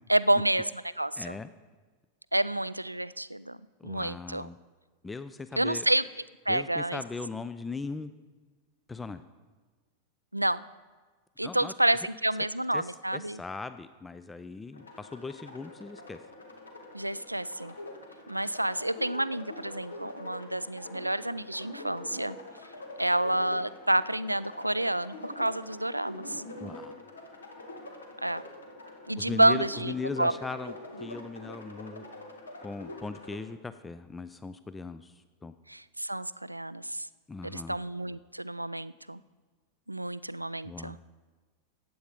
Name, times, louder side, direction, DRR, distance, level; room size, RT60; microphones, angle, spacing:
voice 1, 0.1-1.4 2.3-3.6 3.8-4.5 5.5-6.0 6.5-7.0 10.3-10.6 11.4-13.4 16.9-17.7 18.3-22.4 23.0-26.4 28.2-28.4 29.1-30.3 35.7-37.1 37.4-39.2 39.9-41.0, right 1 dB, 85° right, 17 dB, 0.3 m, -29 dB
voice 2, 1.2-1.5 3.8-4.6 5.0-5.9 6.5-8.1 8.9-9.2 11.4-11.7 12.7-16.2 26.6-27.0 29.2-32.1 32.6-35.5 37.3-37.8 40.6-41.0, left 4 dB, 10° left, 12 dB, 0.4 m, -39 dB
sound 1, 14.7-33.4, left 1 dB, 75° left, 1.9 m, -45 dB
15.0 x 9.2 x 5.0 m, 1.4 s
figure-of-eight pair, 90°, 0 cm